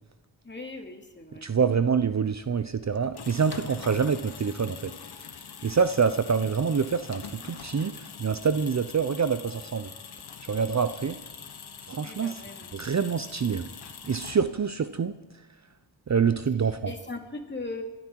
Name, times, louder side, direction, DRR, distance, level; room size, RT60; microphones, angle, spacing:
voice 1, 0.4-1.5 12.0-12.7 16.9-17.8, left 3 dB, 25° left, 3 dB, 2.5 m, -39 dB
voice 2, 1.4-4.9 5.6-9.9 10.4-11.2 11.9-12.4 12.7-13.7 14.0-15.1 16.1-16.9, right 6 dB, 40° right, 11 dB, 0.7 m, -26 dB
sound 1, 2.9-14.8, left 6 dB, 60° left, 1.3 m, -44 dB
22.0 x 12.0 x 4.7 m, 1.1 s
cardioid pair, 60°, 44 cm